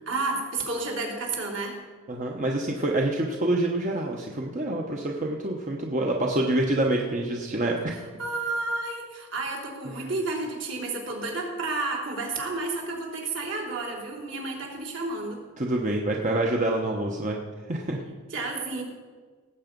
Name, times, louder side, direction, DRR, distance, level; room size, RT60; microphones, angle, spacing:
voice 1, 0.1-1.8 7.9-15.4 18.3-18.8, right 3 dB, 65° right, -1 dB, 3.3 m, -31 dB
voice 2, 2.1-8.0 10.0-10.1 15.6-17.4 17.7-18.0, right 1 dB, 40° right, 0 dB, 1.0 m, -26 dB
18.0 x 8.0 x 5.3 m, 1.5 s
head